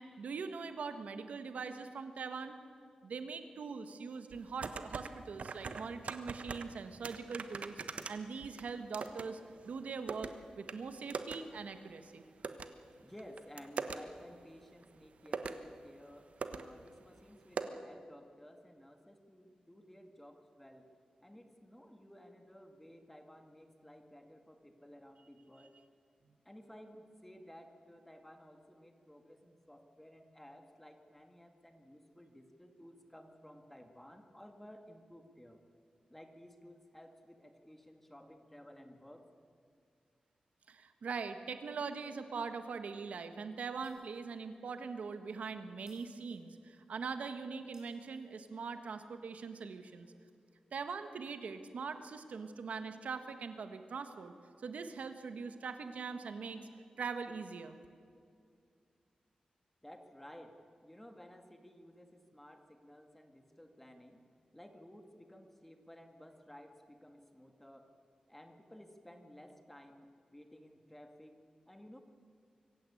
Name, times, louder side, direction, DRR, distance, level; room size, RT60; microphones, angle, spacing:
voice 1, 0.0-2.6 3.0-7.7 8.1-9.4 9.6-10.3 10.6-12.2 40.7-50.1 50.7-54.3 54.6-56.6 57.0-57.8, right 5 dB, 85° right, 8 dB, 1.5 m, -42 dB
sound 1, 4.3-5.1 5.4-6.7 7.0-9.3 9.6-10.3 10.7-10.8 11.1-11.4 11.7-11.8 12.4-12.7 13.2-14.0 14.8-14.9 15.3-15.6 16.1-16.2 16.4-16.6 16.9-17.0 17.6-17.7, right 5 dB, 65° right, 1.3 m, -40 dB
voice 2, 13.0-20.9 21.2-25.8 26.4-35.6 36.1-39.3 59.8-60.6 60.8-64.2 64.5-67.9 68.3-72.0, equal, 10° left, 5 dB, 2.2 m, -55 dB
Shatter, 43.8-44.4 44.7-44.8 45.9-46.9 47.7-48.7, right 2 dB, 30° right, 5.6 m, -67 dB
24.5 x 16.0 x 8.6 m, 2.3 s
wide cardioid pair, 110°, 2 cm